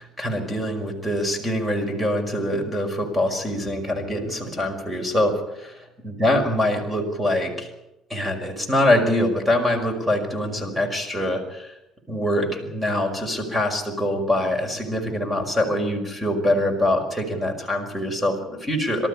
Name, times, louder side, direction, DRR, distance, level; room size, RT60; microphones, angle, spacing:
voice 1, 0.0-5.7 6.0-7.7 8.1-11.7 12.1-19.1, left 1 dB, 10° right, 5 dB, 5.4 m, -24 dB
27.0 x 13.5 x 10.0 m, 0.90 s
cardioid pair, 115°, 0 cm